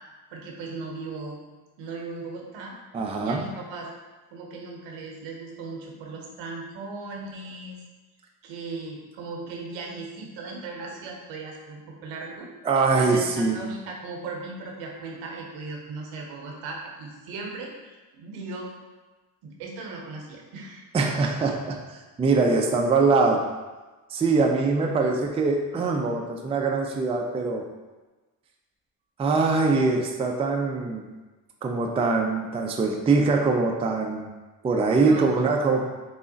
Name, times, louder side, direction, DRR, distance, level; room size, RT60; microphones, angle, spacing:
voice 1, 0.3-1.4 1.8-2.7 3.2-3.9 4.3-7.8 8.4-12.5 13.0-18.7 19.4-20.8 25.0-25.2 35.0-35.3, right 3 dB, 80° right, 0 dB, 0.9 m, -37 dB
voice 2, 2.9-3.4 12.6-13.6 20.9-23.4 24.1-27.6 29.2-31.0 31.6-34.3 34.6-35.9, right 4 dB, 15° right, 2 dB, 0.4 m, -23 dB
3.6 x 2.1 x 3.8 m, 1.2 s
supercardioid pair, 70°, 44 cm